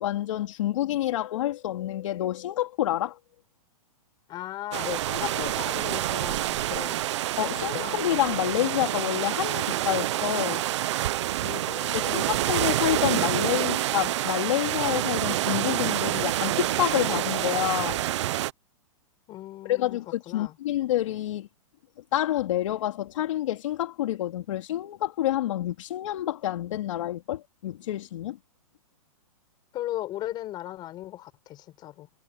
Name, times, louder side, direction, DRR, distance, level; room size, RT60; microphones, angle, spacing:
voice 1, 0.0-3.2 7.4-10.6 11.9-18.0 19.7-21.5 22.1-28.4, left 13 dB, 55° left, 3.2 m, -28 dB
voice 2, 4.3-7.0 7.7-8.0 11.4-12.4 19.3-20.6 29.7-32.1, left 14 dB, 25° left, 5.9 m, -37 dB
sound 1, 4.7-18.5, right 14 dB, 55° right, 0.7 m, -27 dB
hypercardioid pair, 160°, 19 cm